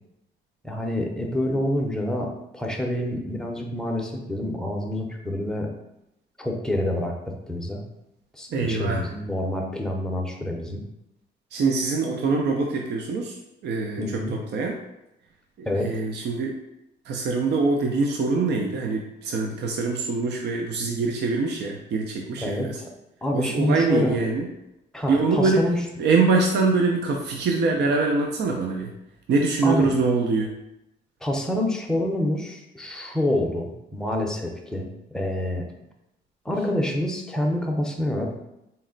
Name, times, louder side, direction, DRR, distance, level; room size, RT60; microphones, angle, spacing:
voice 1, 0.6-5.7 6.4-7.1 7.5-7.8 8.3-10.8 14.0-14.3 15.7-15.9 22.4-22.9 23.2-24.2 24.9-25.8 29.6-29.9 31.2-35.7 36.4-38.3, left 1 dB, 5° left, 0 dB, 0.6 m, -27 dB
voice 2, 8.5-9.1 11.5-13.4 13.6-14.8 15.6-16.6 17.1-22.8 23.3-24.5 25.1-25.7 26.0-28.9 29.3-30.5, right 3 dB, 60° right, 1 dB, 0.5 m, -24 dB
4.1 x 2.1 x 3.8 m, 0.88 s
cardioid pair, 90°, 20 cm